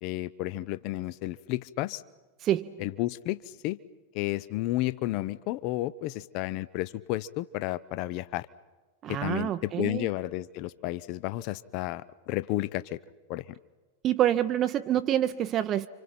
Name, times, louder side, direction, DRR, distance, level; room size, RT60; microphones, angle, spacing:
voice 1, 0.0-2.0 2.8-3.8 4.1-8.5 9.1-13.0 13.3-13.4, left 16 dB, 45° left, 17 dB, 0.7 m, -32 dB
voice 2, 2.4-2.8 9.0-10.1 14.0-15.9, right 11 dB, 30° right, 11 dB, 0.7 m, -27 dB
30.0 x 26.0 x 5.9 m, 1.3 s
figure-of-eight pair, 90°, 0 cm